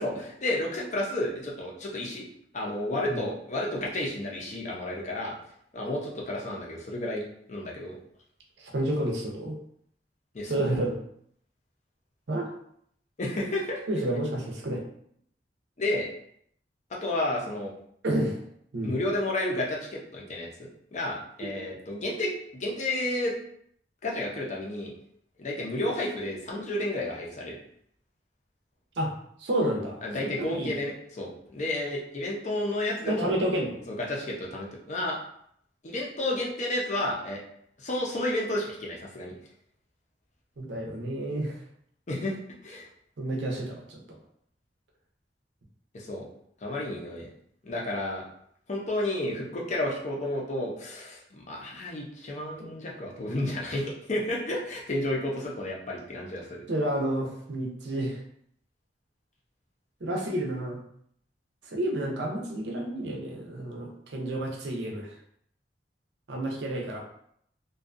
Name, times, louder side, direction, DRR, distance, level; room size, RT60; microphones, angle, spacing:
voice 1, 0.0-2.2 2.5-5.4 5.7-7.2 7.5-8.0 10.3-10.7 13.2-13.8 15.8-16.1 16.9-17.7 18.8-23.3 24.0-24.9 25.4-27.6 30.0-33.4 33.9-35.2 35.8-37.4 37.8-39.3 42.1-42.4 42.6-42.9 45.9-46.3 46.6-47.3 47.6-48.2 48.7-56.6, left 1 dB, 40° left, -2 dB, 0.5 m, -31 dB
voice 2, 8.6-9.6 10.5-10.9 12.3-12.5 13.9-14.8 18.0-18.4 18.7-18.9 21.4-21.6 29.0-29.1 29.4-30.0 30.4-30.7 33.1-33.8 40.6-41.6 43.2-44.0 52.6-52.7 56.7-58.2 60.0-60.8 61.7-65.1 66.3-67.0, right 1 dB, 75° right, 0 dB, 0.6 m, -30 dB
2.5 x 2.3 x 2.4 m, 0.68 s
head